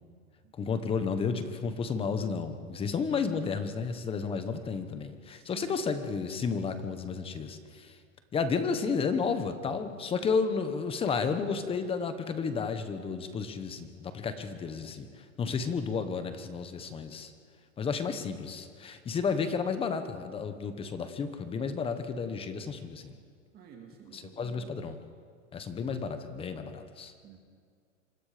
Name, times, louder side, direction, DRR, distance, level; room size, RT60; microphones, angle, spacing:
voice 1, 0.6-7.9 8.3-15.1 15.4-17.3 17.8-23.1 24.1-25.0 25.5-27.1, left 5 dB, 15° left, 9 dB, 1.2 m, -32 dB
voice 2, 5.3-5.7 23.5-24.7 27.2-27.4, right 8 dB, 25° right, 2 dB, 2.4 m, -51 dB
26.5 x 24.0 x 5.2 m, 2.1 s
supercardioid pair, 150°, 39 cm